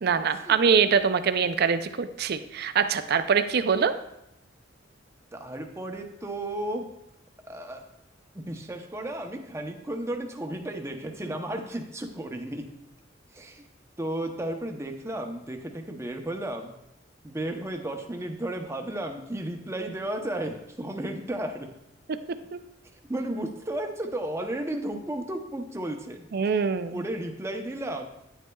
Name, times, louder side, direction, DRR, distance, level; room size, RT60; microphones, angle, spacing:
voice 1, 0.0-3.9 22.5-22.6 26.3-27.0, right 6 dB, 55° right, 10 dB, 0.4 m, -24 dB
voice 2, 5.3-6.9 7.5-7.9 8.3-12.7 13.3-13.7 14.0-16.7 17.2-21.7 23.1-26.3 26.9-28.1, right 1 dB, 15° right, 4 dB, 0.7 m, -33 dB
9.8 x 8.2 x 2.3 m, 0.82 s
head